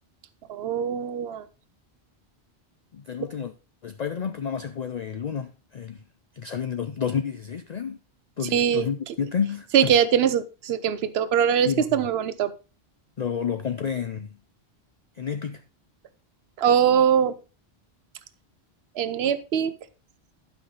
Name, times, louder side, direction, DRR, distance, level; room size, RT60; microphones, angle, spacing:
voice 1, 0.5-1.4 8.5-8.9 9.7-12.5 16.6-17.3 19.0-19.7, right 8 dB, 75° right, 0.9 m, -22 dB
voice 2, 2.9-3.5 3.8-6.0 6.3-8.0 8.4-9.9 11.6-12.0 13.2-14.3 15.2-15.6, left 7 dB, 50° left, 0.6 m, -30 dB
11.5 x 5.7 x 3.9 m
omnidirectional pair, 1.1 m